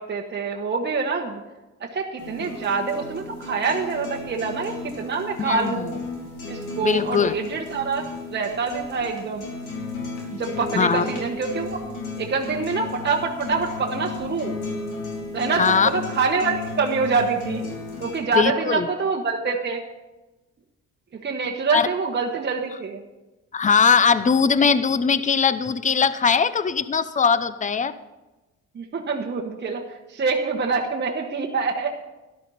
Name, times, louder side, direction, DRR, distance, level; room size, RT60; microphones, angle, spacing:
voice 1, 0.0-1.4 1.8-6.0 6.5-8.0 8.3-9.4 10.3-11.8 12.2-14.5 15.3-17.6 18.0-19.8 21.2-23.0 28.7-29.8 30.1-31.9, right 4 dB, 35° right, 1 dB, 1.2 m, -25 dB
sound 1, 2.2-18.2, left 3 dB, 80° left, 3.9 m, -34 dB
voice 2, 5.4-5.9 6.8-7.4 10.7-11.0 15.6-15.9 18.3-18.9 21.7-21.9 23.5-27.9, left 6 dB, 25° left, 14 dB, 0.7 m, -20 dB
12.5 x 11.5 x 4.2 m, 1.1 s
cardioid pair, 90°, 30 cm